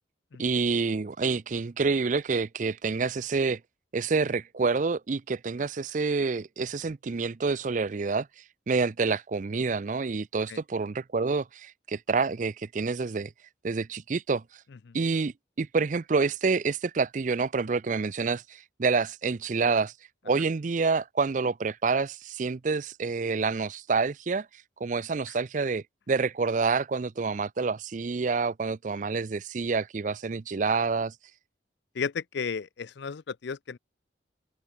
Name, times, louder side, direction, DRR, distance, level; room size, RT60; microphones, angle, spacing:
voice 1, 0.4-3.6 3.9-8.3 8.7-13.3 13.6-14.4 14.9-15.3 15.6-19.9 20.3-24.5 24.8-31.1, right 4 dB, 40° right, 0.4 m, -28 dB
voice 2, 31.9-33.8, left 6 dB, 65° left, 0.5 m, -34 dB
open air
head